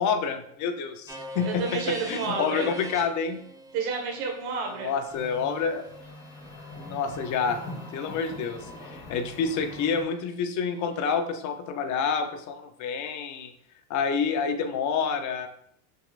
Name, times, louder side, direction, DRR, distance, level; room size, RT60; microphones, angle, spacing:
voice 1, 0.0-3.4 4.8-5.9 6.8-7.6 7.9-13.5 13.9-15.5, left 6 dB, 40° left, 7 dB, 0.7 m, -28 dB
sound 1, 1.1-9.0, right 1 dB, 10° right, 0.5 m, -44 dB
voice 2, 1.4-2.7 3.7-4.9, right 5 dB, 55° right, 2 dB, 1.5 m, -30 dB
sound 2, 5.1-10.0, left 1 dB, 25° left, 1.8 m, -42 dB
6.5 x 3.1 x 2.5 m, 0.69 s
supercardioid pair, 110°, 44 cm